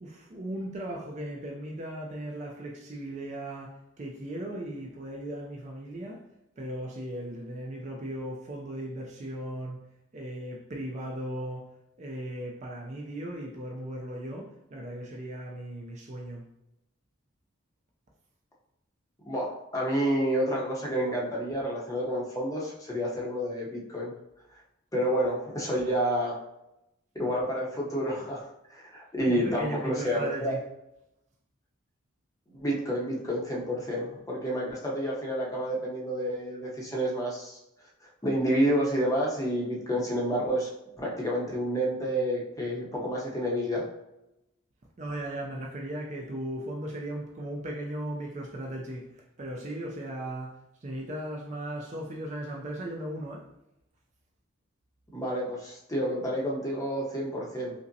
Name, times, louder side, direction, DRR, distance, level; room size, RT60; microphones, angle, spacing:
voice 1, 0.0-6.2 6.6-9.8 10.1-11.7 12.0-16.5 29.3-30.6 45.0-49.1 49.4-53.5, right 1 dB, 35° right, 0.4 m, -37 dB
voice 2, 19.2-24.1 24.9-26.4 27.1-28.4 28.7-30.5 32.5-37.6 38.0-40.7 41.0-43.9 55.1-57.7, equal, 15° left, 0.7 m, -29 dB
5.1 x 2.0 x 2.6 m
head